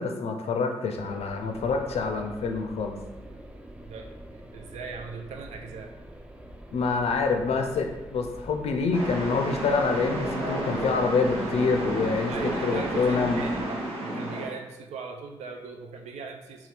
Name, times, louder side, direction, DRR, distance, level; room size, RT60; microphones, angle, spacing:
voice 1, 0.0-3.0 6.7-13.4, left 4 dB, 65° left, 4 dB, 0.4 m, -26 dB
sound 1, 1.0-13.6, right 1 dB, 10° right, 0.4 m, -45 dB
voice 2, 3.8-5.9 12.3-16.7, right 4 dB, 80° right, 3 dB, 0.4 m, -39 dB
sound 2, 8.9-14.5, right 1 dB, 60° right, 0.8 m, -31 dB
2.8 x 2.3 x 3.3 m, 1.0 s
supercardioid pair, 40°, 11 cm